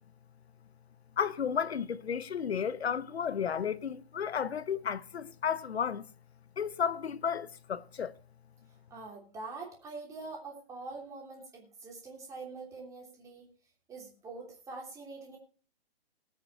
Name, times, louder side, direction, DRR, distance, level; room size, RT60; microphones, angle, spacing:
voice 1, 1.2-6.0 6.6-8.1, left 7 dB, 90° left, 1.0 m, -33 dB
voice 2, 8.9-13.5 13.9-15.4, right 3 dB, 10° right, 3.1 m, -44 dB
19.0 x 6.7 x 4.4 m
hypercardioid pair, 155°, 31 cm